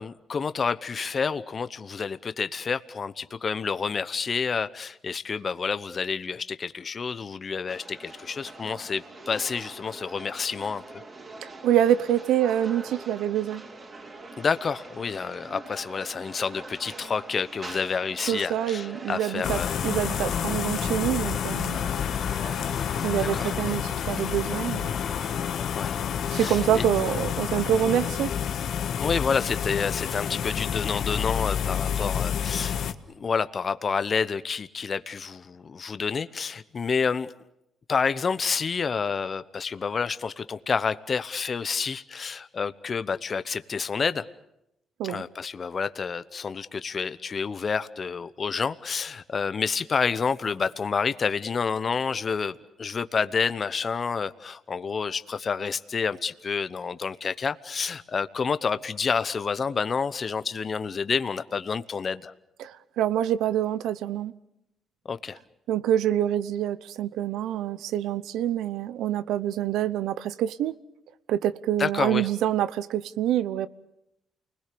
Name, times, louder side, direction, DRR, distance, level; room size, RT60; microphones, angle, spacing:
voice 1, 0.0-11.0 14.4-19.7 23.2-23.5 25.8-26.0 26.3-26.8 29.0-32.8 33.1-37.3 37.9-44.2 45.0-62.3 65.0-65.4 71.8-72.3, left 5 dB, 40° left, 0.9 m, -29 dB
sound 1, 7.7-25.5, right 2 dB, 35° right, 3.3 m, -44 dB
voice 2, 11.4-13.6 18.3-21.8 23.0-24.9 26.3-28.3 45.0-45.2 62.6-64.3 65.7-70.7 71.3-73.7, right 11 dB, 85° right, 0.9 m, -26 dB
sound 2, 19.4-32.9, left 8 dB, 70° left, 1.3 m, -29 dB
29.5 x 20.5 x 6.9 m
cardioid pair, 90°, 0 cm